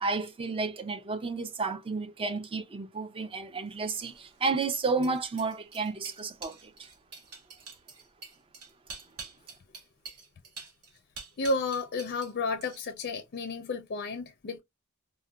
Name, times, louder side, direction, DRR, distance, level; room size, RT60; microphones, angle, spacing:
voice 1, 0.0-6.9, right 4 dB, 25° right, 0.3 m, -32 dB
sound 1, 3.8-12.3 12.6-13.1, right 4 dB, 80° right, 1.0 m, -47 dB
voice 2, 11.4-14.6, left 3 dB, 45° left, 0.4 m, -32 dB
3.8 x 2.1 x 2.2 m
head